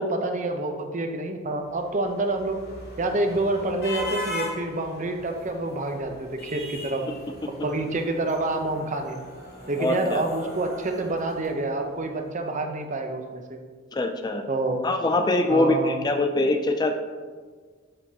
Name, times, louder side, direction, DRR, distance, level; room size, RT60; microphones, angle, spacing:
voice 1, 0.0-2.6 3.0-7.0 7.5-9.2 9.7-13.6 14.5-14.8 15.5-16.0, right 2 dB, 40° right, 4 dB, 0.7 m, -27 dB
sound 1, 1.7-12.0, left 1 dB, 55° left, 2.2 m, -39 dB
voice 2, 9.8-10.2 13.9-14.4 14.8-17.0, left 2 dB, 20° left, 5 dB, 0.4 m, -23 dB
10.5 x 5.2 x 2.8 m, 1.5 s
head